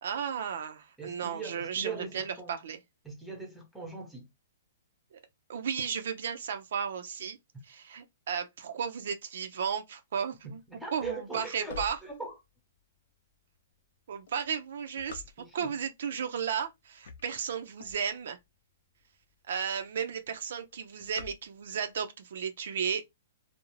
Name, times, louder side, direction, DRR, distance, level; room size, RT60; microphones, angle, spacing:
voice 1, 0.0-2.8 5.1-5.2 5.5-7.4 7.7-10.6 10.9-12.0 14.1-15.2 15.5-18.4 19.5-23.0, right 7 dB, 65° right, 0.4 m, -34 dB
voice 2, 1.0-2.6 3.0-4.3 10.4-12.4 15.4-15.7, right 4 dB, ahead, 0.7 m, -41 dB
car - glove box, 10.7-12.8 13.3-13.4 14.1-15.8 16.4-16.7 16.9-18.5 19.0-19.1 19.3-19.4 19.7-20.1 20.3-21.9, left 6 dB, 65° left, 0.6 m, -47 dB
2.4 x 2.0 x 3.0 m
hypercardioid pair, 160°, 0 cm